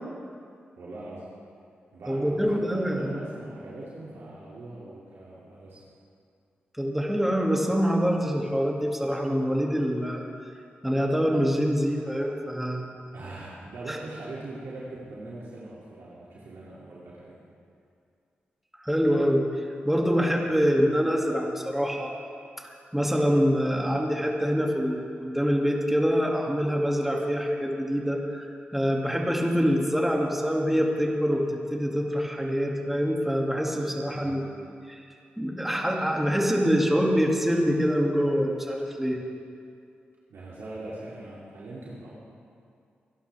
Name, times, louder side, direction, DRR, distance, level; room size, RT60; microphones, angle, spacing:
voice 1, 0.8-1.3 1.9-5.8 13.1-17.4 20.4-20.5 34.1-34.4 40.3-42.1, right 2 dB, 75° right, -7 dB, 2.6 m, -41 dB
voice 2, 2.1-3.2 6.8-10.2 10.8-13.1 13.9-14.0 18.8-22.1 22.6-31.4 31.7-34.4 34.9-35.0 35.4-39.2, equal, 5° right, -1 dB, 2.5 m, -25 dB
24.5 x 11.5 x 3.5 m, 2.4 s
supercardioid pair, 40°, 4 cm